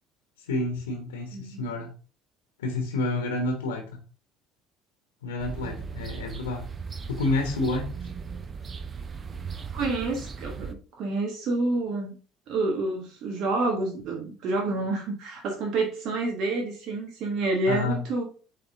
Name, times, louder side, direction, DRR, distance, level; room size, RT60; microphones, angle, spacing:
voice 1, 0.4-1.9 2.6-4.0 5.2-6.6 7.1-7.9 17.7-18.0, left 2 dB, 75° left, 3 dB, 1.2 m, -29 dB
voice 2, 1.3-1.6 9.7-12.1 12.5-18.2, right 2 dB, 50° right, 2 dB, 1.3 m, -28 dB
sound 1, 5.4-10.7, right 5 dB, 30° right, 0.8 m, -37 dB
8.5 x 3.5 x 3.6 m, 0.38 s
figure-of-eight pair, 60°, 0 cm